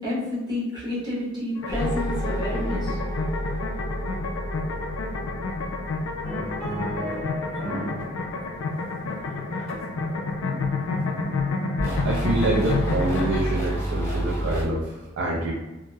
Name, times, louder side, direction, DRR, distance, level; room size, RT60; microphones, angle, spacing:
voice 1, 0.0-3.0, left 1 dB, 20° right, -9 dB, 1.0 m, -30 dB
sound 1, 1.6-13.6, left 3 dB, 85° left, 0.4 m, -29 dB
sound 2, 1.7-8.1 11.8-14.6, right 1 dB, 15° left, 0.5 m, -30 dB
sound 3, 6.2-8.1 8.4-10.0 10.5-10.7, equal, 50° right, 1.4 m, -34 dB
voice 2, 12.0-15.5, right 2 dB, 75° right, -3 dB, 0.4 m, -26 dB
2.9 x 2.0 x 2.2 m, 1.1 s
head